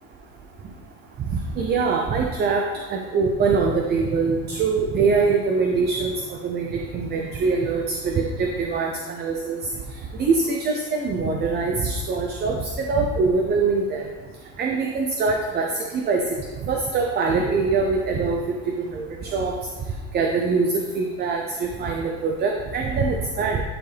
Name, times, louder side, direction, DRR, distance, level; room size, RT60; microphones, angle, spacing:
voice 1, 1.6-2.6 2.9-6.1 6.4-6.7 6.9-9.6 10.2-14.1 14.6-15.7 15.9-16.2 16.6-18.4 18.8-19.5 20.1-23.6, right 4 dB, 30° right, 1 dB, 0.6 m, -23 dB
10.5 x 4.6 x 3.4 m, 1.4 s
supercardioid pair, 130°, 34 cm